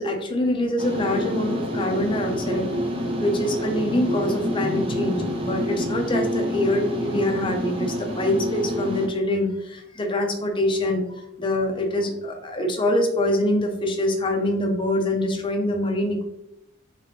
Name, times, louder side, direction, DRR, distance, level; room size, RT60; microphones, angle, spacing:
voice 1, 0.0-2.7 3.2-16.2, left 1 dB, 25° left, 3 dB, 0.5 m, -24 dB
sound 1, 0.8-9.1, equal, 25° right, 0.5 m, -28 dB
3.7 x 3.0 x 3.3 m, 0.83 s
head